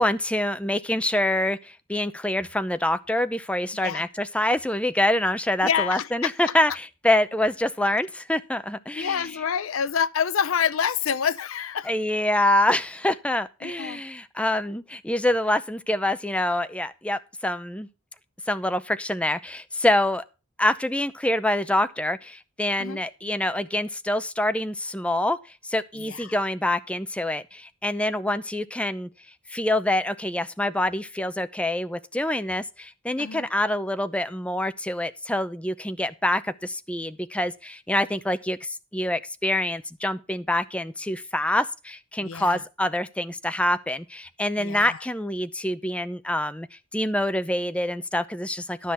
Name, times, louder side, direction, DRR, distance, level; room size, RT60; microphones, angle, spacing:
voice 1, 0.0-9.3 11.8-17.9 18.5-20.2 20.6-25.4 25.6-29.1 29.5-48.9, left 1 dB, 5° left, 0.6 m, -26 dB
voice 2, 5.6-6.3 9.0-11.9 13.6-14.0 22.8-23.0 26.0-26.2 33.2-33.5 42.2-42.6 44.6-44.9, left 7 dB, 75° left, 0.6 m, -27 dB
12.5 x 6.3 x 5.5 m
head